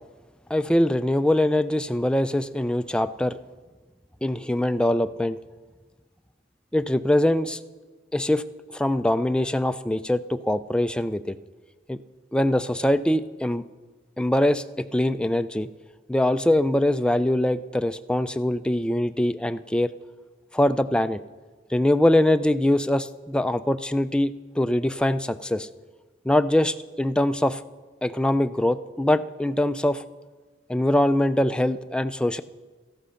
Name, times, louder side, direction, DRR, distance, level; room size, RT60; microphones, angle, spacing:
voice 1, 0.5-3.4 4.2-5.4 6.7-7.6 8.1-8.4 8.7-11.3 11.9-12.0 12.3-13.7 14.2-15.7 16.1-19.9 20.5-21.2 21.7-25.7 26.3-27.6 28.0-30.0 30.7-32.4, left 1 dB, 5° left, 10 dB, 0.3 m, -23 dB
14.5 x 13.5 x 5.8 m, 1.4 s
head